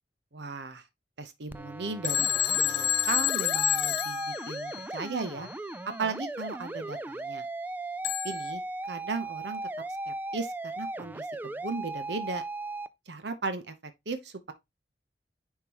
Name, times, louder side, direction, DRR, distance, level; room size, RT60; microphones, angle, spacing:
voice 1, 0.3-0.8 1.2-5.5 5.9-7.5 8.2-8.6 8.9-9.6 10.1-12.4 13.1-14.5, right 3 dB, 70° right, 0.9 m, -36 dB
sound 1, 1.5-12.9, right 2 dB, 10° right, 0.3 m, -37 dB
Telephone, 2.0-5.1 8.0-8.5, left 11 dB, 80° left, 0.8 m, -28 dB
9.7 x 3.7 x 3.0 m
head